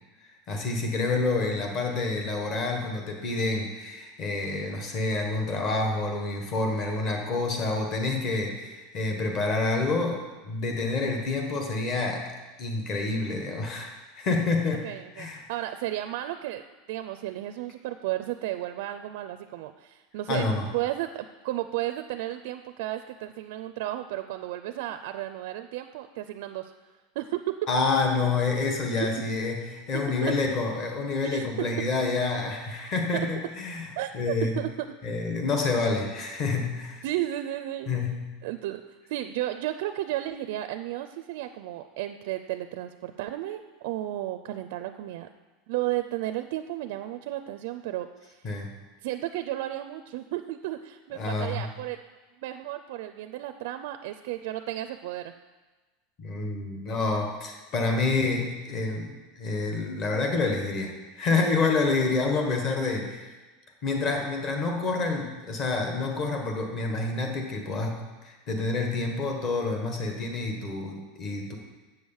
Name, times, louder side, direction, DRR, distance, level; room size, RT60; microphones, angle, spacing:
voice 1, 0.2-12.3 12.6-14.9 15.1-15.4 20.3-20.7 27.7-34.6 35.0-37.0 37.9-38.3 48.4-48.7 51.1-51.7 56.2-63.3 63.8-71.6, left 3 dB, 30° left, 2 dB, 1.4 m, -28 dB
voice 2, 14.8-16.6 16.9-20.4 20.7-26.7 27.2-27.5 30.2-30.3 31.3-31.4 34.0-34.7 37.0-37.9 38.4-38.8 39.1-45.3 45.7-48.3 49.0-52.0 52.4-55.3, right 14 dB, 60° right, 9 dB, 0.4 m, -33 dB
7.9 x 6.4 x 7.1 m, 1.2 s
supercardioid pair, 170°, 0 cm